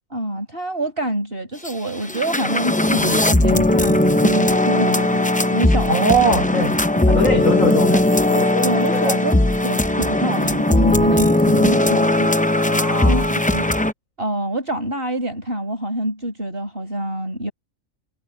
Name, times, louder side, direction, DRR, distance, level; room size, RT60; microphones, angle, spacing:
voice 1, 0.1-6.3 8.6-12.3 13.0-13.7 14.2-17.5, right 1 dB, 45° right, 6.0 m, -26 dB
sound 1, 1.6-1.7 2.0-13.9, left 1 dB, 15° left, 0.3 m, -18 dB
voice 2, 5.9-6.7 7.1-9.5 12.6-13.3, right 1 dB, 75° left, 4.7 m, -22 dB
omnidirectional pair, 1.4 m